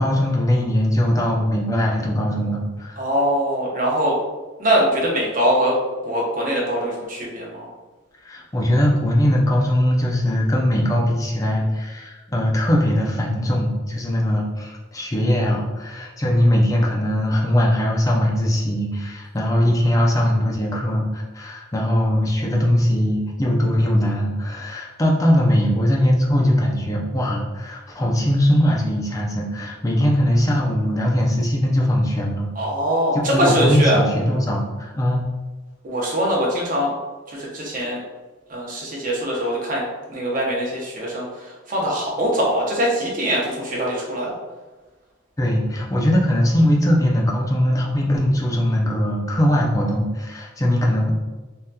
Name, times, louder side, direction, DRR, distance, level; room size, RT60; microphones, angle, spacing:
voice 1, 0.0-3.0 8.2-32.5 33.1-35.3 45.4-51.1, equal, 15° left, -2 dB, 0.4 m, -20 dB
voice 2, 3.0-4.2 4.6-5.8 6.0-7.7 32.6-34.0 35.8-36.9 37.3-38.0 38.5-39.8 40.1-44.4, equal, 40° right, -4 dB, 0.8 m, -22 dB
3.5 x 2.8 x 2.2 m, 1.2 s
head